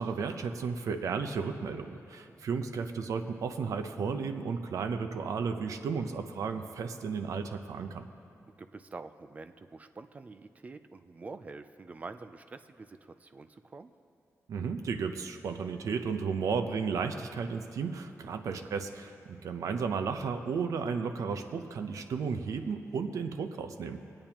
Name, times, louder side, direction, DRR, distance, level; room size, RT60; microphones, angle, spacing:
voice 1, 0.0-8.1 14.5-24.0, right 5 dB, 80° right, 7 dB, 0.7 m, -33 dB
voice 2, 8.6-13.9 18.2-18.4 22.3-22.5, right 3 dB, 25° right, 10 dB, 0.4 m, -47 dB
23.5 x 8.7 x 2.9 m, 2.7 s
wide cardioid pair, 175°, 6 cm